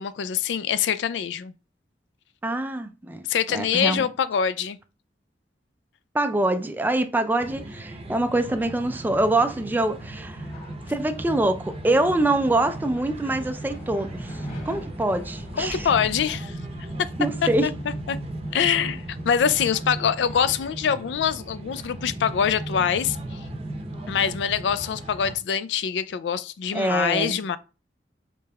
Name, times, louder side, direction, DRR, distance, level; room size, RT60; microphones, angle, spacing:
voice 1, 0.0-1.5 3.3-4.8 15.6-16.6 17.0-17.1 17.6-17.7 18.1-18.2 18.5-23.4 24.1-27.6, left 7 dB, 85° left, 0.3 m, -24 dB
voice 2, 2.4-3.2 3.5-4.1 6.1-10.4 10.9-15.9 17.2-17.7 26.7-27.4, right 2 dB, 10° right, 0.3 m, -25 dB
sound 1, 7.4-25.3, right 1 dB, 35° right, 0.7 m, -36 dB
sound 2, 9.6-20.6, equal, 35° left, 2.3 m, -43 dB
5.1 x 3.2 x 2.2 m
head